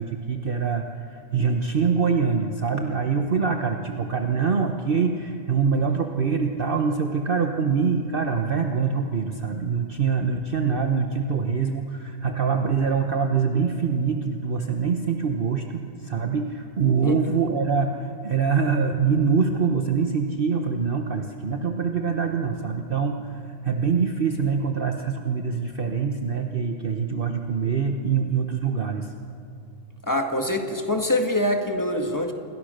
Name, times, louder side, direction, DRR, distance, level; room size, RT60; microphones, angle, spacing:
voice 1, 0.0-29.1, right 5 dB, 45° right, 4 dB, 1.2 m, -24 dB
voice 2, 30.0-32.3, left 1 dB, 15° left, 4 dB, 1.9 m, -24 dB
28.5 x 21.5 x 6.6 m, 2.5 s
omnidirectional pair, 1.3 m